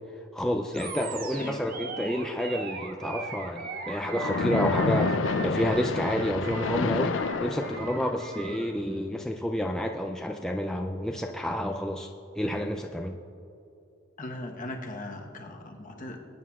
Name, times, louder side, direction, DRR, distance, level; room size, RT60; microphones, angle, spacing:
voice 1, 0.3-13.2, equal, 5° left, 2 dB, 0.3 m, -30 dB
Animal, 0.7-8.7, right 4 dB, 45° right, 0.8 m, -39 dB
Splash splatter, 4.2-8.2, left 4 dB, 65° left, 0.4 m, -29 dB
voice 2, 14.2-16.3, left 1 dB, 40° left, 2 dB, 1.1 m, -39 dB
21.0 x 9.3 x 2.4 m, 2.9 s
head